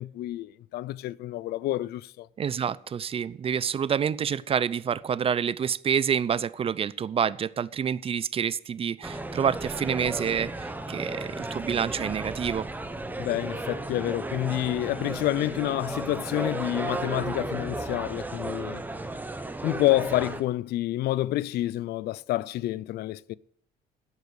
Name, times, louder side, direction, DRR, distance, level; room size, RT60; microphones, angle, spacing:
voice 1, 0.0-2.3 13.2-18.8 19.6-23.3, left 15 dB, 70° left, 0.5 m, -28 dB
voice 2, 2.4-12.7, right 7 dB, 35° right, 0.5 m, -28 dB
sound 1, 9.0-20.4, right 2 dB, 10° right, 1.1 m, -34 dB
11.0 x 8.3 x 6.6 m
cardioid pair, 110°, 17 cm